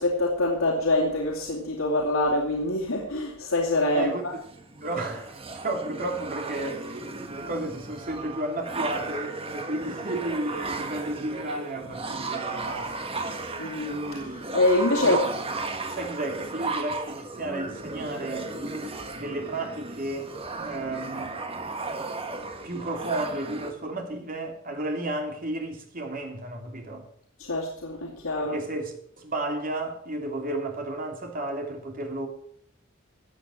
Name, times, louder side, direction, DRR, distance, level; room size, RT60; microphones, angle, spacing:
voice 1, 0.0-4.3 13.6-15.2 27.4-28.6, left 2 dB, 90° left, 2.7 m, -25 dB
sound 1, 3.8-23.7, right 3 dB, 30° right, 1.6 m, -35 dB
voice 2, 4.8-13.1 15.0-15.2 15.9-18.5 19.1-20.3 20.6-21.4 22.6-27.1 28.4-32.3, right 2 dB, 45° right, 3.2 m, -32 dB
15.0 x 8.7 x 6.4 m
head